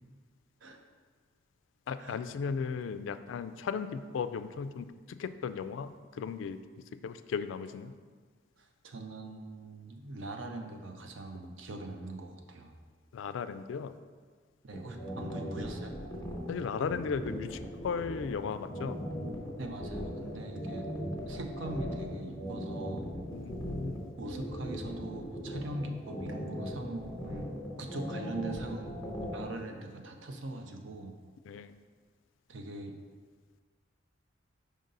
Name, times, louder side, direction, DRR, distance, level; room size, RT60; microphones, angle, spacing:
voice 1, 1.9-6.6 7.0-7.9 13.1-13.9 16.5-19.0 23.3-24.0 31.4-31.8, left 6 dB, 75° left, 12 dB, 0.3 m, -36 dB
voice 2, 8.6-12.7 14.6-15.9 19.6-20.9 21.3-23.1 24.2-27.5 27.8-28.9 29.3-31.1 32.5-33.0, right 2 dB, 75° right, 4 dB, 0.6 m, -41 dB
sound 1, 14.7-29.4, equal, 20° left, 1.0 m, -39 dB
5.1 x 3.9 x 5.3 m, 1.5 s
head